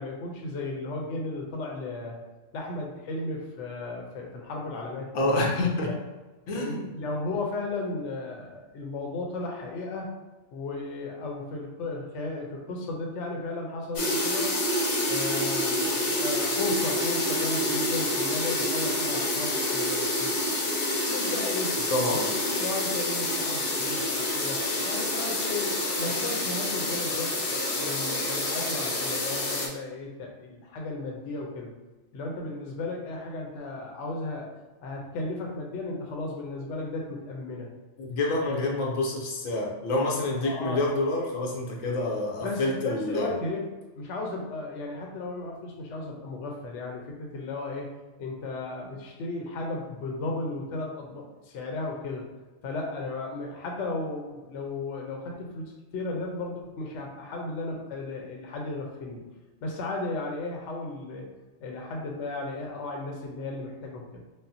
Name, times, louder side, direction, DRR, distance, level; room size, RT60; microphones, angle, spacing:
voice 1, 0.0-2.2 2.5-5.4 6.5-10.1 10.5-14.5 15.0-20.6 21.1-21.8 22.1-31.7 32.1-34.5 34.8-37.7 38.5-38.6 40.4-40.9 42.4-43.6 44.0-47.9 48.2-52.3 52.6-59.2 59.6-61.3 61.6-64.2, left 2 dB, 70° left, 0 dB, 1.0 m, -35 dB
voice 2, 5.1-5.9 6.5-6.9 21.9-22.3 38.0-43.3, left 2 dB, 85° left, -1 dB, 1.1 m, -27 dB
sound 1, 14.0-29.7, left 1 dB, 45° left, 0.6 m, -28 dB
5.4 x 2.1 x 2.7 m, 1.2 s
omnidirectional pair, 1.3 m